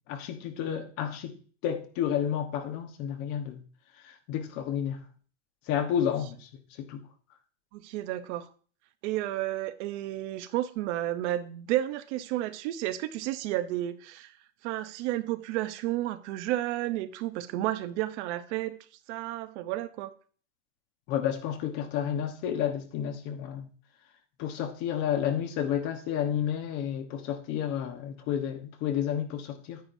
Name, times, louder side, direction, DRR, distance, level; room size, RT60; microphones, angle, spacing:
voice 1, 0.1-1.3 1.6-3.6 4.0-5.0 5.7-6.5 6.8-7.0 21.1-23.7 24.4-29.8, left 9 dB, 55° left, 1.3 m, -31 dB
voice 2, 7.7-8.5 9.0-14.4 14.6-18.8 19.1-20.1, right 14 dB, 70° right, 0.9 m, -32 dB
9.9 x 9.6 x 2.7 m
supercardioid pair, 160°, 36 cm